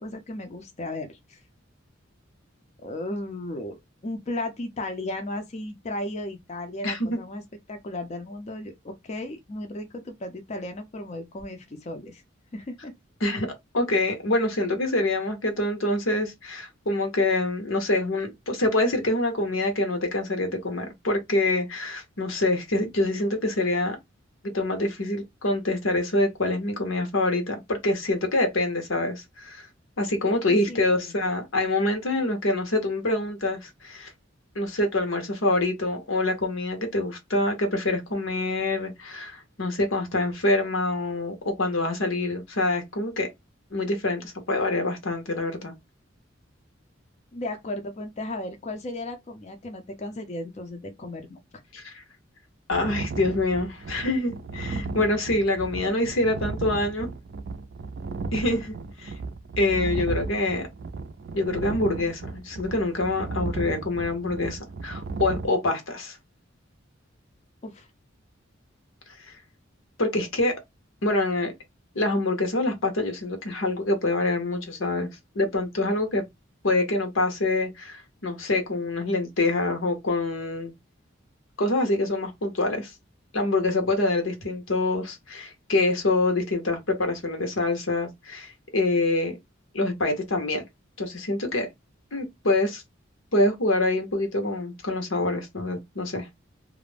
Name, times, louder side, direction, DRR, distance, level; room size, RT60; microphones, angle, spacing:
voice 1, 0.0-1.4 2.8-7.4 7.7-12.2 12.5-12.9 30.5-31.1 47.3-51.4 67.6-67.9, left 1 dB, 35° left, 0.5 m, -35 dB
voice 2, 6.8-7.2 13.2-13.5 13.7-24.0 24.4-29.7 30.0-34.1 34.5-43.3 43.7-45.7 51.7-52.0 52.7-57.1 58.3-58.7 59.0-59.1 59.6-60.7 61.3-66.2 69.2-69.3 70.0-70.6 71.0-71.5 71.9-75.1 75.3-76.2 76.6-80.7 81.6-82.9 83.3-89.4 89.7-90.6 91.0-91.7 92.1-92.8 93.3-96.3, left 2 dB, 90° left, 0.9 m, -26 dB
sound 1, 52.7-65.5, right 3 dB, 55° right, 0.4 m, -35 dB
2.4 x 2.1 x 3.2 m
head